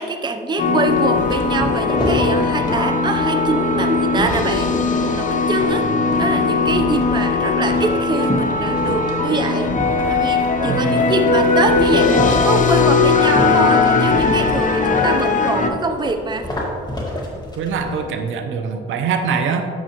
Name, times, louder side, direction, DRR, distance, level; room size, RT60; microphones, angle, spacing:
voice 1, 0.0-4.7 5.0-5.8 6.2-9.7 10.1-16.5, right 3 dB, 20° right, 6 dB, 0.6 m, -24 dB
sound 1, 0.6-15.7, left 4 dB, 40° left, 0.7 m, -18 dB
sound 2, 0.9-18.1, left 1 dB, 20° left, 1.7 m, -30 dB
voice 2, 5.6-6.0 10.6-11.1 17.6-19.6, right 6 dB, 80° right, 6 dB, 0.8 m, -24 dB
8.7 x 6.8 x 3.0 m, 2.3 s
cardioid pair, 90°, 20 cm